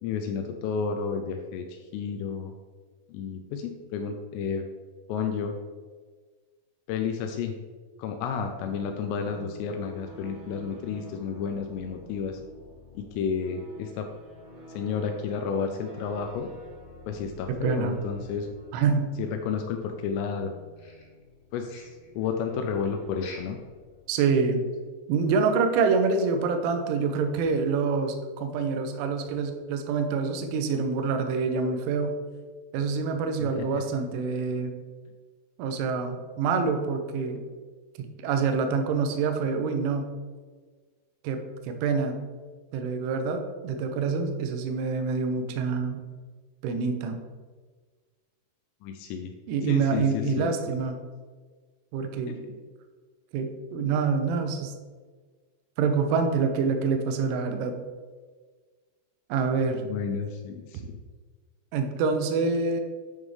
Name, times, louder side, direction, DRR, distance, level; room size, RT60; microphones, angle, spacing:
voice 1, 0.0-2.5 3.1-4.7 5.1-5.5 6.9-7.6 8.0-12.4 13.0-14.1 14.7-16.6 17.1-18.5 19.2-20.5 21.5-21.9 22.2-23.6 33.4-33.7 48.8-49.3 49.6-50.8 52.3-52.5 59.8-60.9, left 6 dB, 85° left, 5 dB, 3.1 m, -31 dB
sound 1, 8.1-24.8, right 1 dB, 55° right, 2.0 m, -49 dB
voice 2, 17.5-18.0 18.7-19.1 24.1-24.7 25.1-32.2 32.7-34.7 35.6-37.4 38.0-40.1 41.2-42.2 42.7-46.0 46.6-47.2 49.5-51.0 51.9-52.4 53.3-54.7 55.8-57.7 59.3-59.8 61.7-62.8, right 5 dB, 80° right, 6 dB, 2.9 m, -26 dB
sound 2, 20.8-21.4 21.7-22.1 23.1-23.7 24.0-24.1 24.6-24.7 25.1-25.2, left 3 dB, 65° left, 3.6 m, -47 dB
9.2 x 5.4 x 3.2 m, 1.5 s
omnidirectional pair, 6.0 m